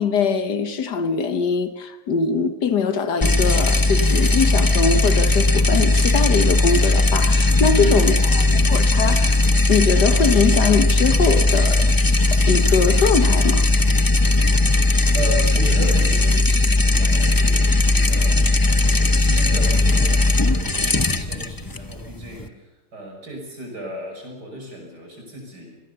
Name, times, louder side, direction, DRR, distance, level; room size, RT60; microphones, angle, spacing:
voice 1, 0.0-8.2 8.5-9.4 9.7-11.9 12.5-13.7, left 5 dB, 85° left, 10 dB, 2.0 m, -22 dB
sound 1, 3.2-22.5, left 2 dB, 20° left, 0.7 m, -18 dB
voice 2, 7.8-8.1 15.1-25.8, right 1 dB, 90° right, 2 dB, 6.5 m, -34 dB
26.0 x 18.5 x 6.9 m, 0.98 s
omnidirectional pair, 1.7 m